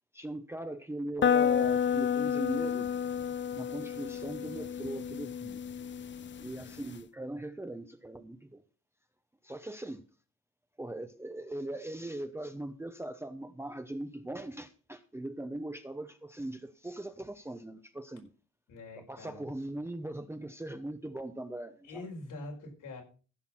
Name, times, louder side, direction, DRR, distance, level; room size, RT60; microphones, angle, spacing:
voice 1, 0.1-2.9 3.5-5.6 6.4-8.6 9.4-10.0 10.8-18.3 18.9-22.0, right 1 dB, 10° right, 0.7 m, -40 dB
sound 1, 1.2-7.0, left 8 dB, 40° left, 0.5 m, -31 dB
voice 2, 18.7-19.5 21.8-23.0, left 2 dB, 85° left, 4.6 m, -44 dB
15.0 x 5.9 x 5.9 m
wide cardioid pair, 130°, 30 cm